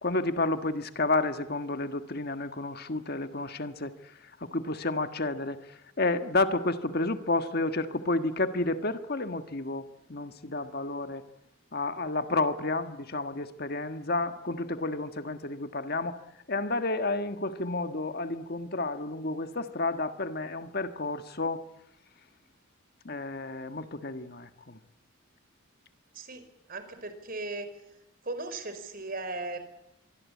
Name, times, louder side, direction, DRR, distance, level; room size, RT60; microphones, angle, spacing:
voice 1, 0.0-11.2 11.7-16.2 16.5-21.6 23.0-24.8, left 2 dB, 45° left, 1.6 m, -31 dB
voice 2, 26.1-27.7 28.2-29.8, right 2 dB, 45° right, 4.9 m, -37 dB
25.0 x 24.0 x 8.5 m
head